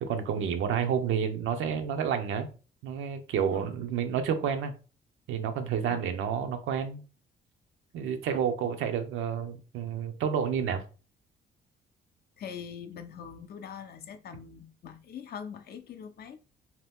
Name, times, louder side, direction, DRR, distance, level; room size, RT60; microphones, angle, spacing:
voice 1, 0.0-2.5 2.8-4.7 5.3-7.0 7.9-10.8, right 7 dB, 85° right, 0.6 m, -30 dB
voice 2, 12.4-16.4, left 7 dB, 50° left, 0.5 m, -43 dB
2.8 x 2.2 x 3.5 m
cardioid pair, 90°, 20 cm